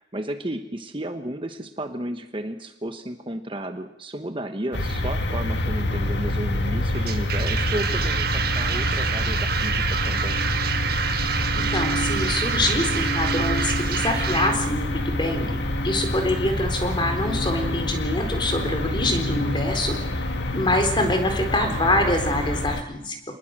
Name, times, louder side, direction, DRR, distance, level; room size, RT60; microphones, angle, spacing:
voice 1, 0.0-8.3 8.5-10.4, right 1 dB, 25° right, 7 dB, 1.2 m, -33 dB
sound 1, 4.7-22.8, left 1 dB, 60° left, 1.8 m, -26 dB
sound 2, 6.9-14.6, right 7 dB, 50° right, 1.7 m, -27 dB
voice 2, 11.6-15.5 15.8-19.9 20.5-23.1, left 1 dB, 25° left, 5 dB, 3.9 m, -25 dB
27.5 x 20.0 x 7.6 m, 0.83 s
head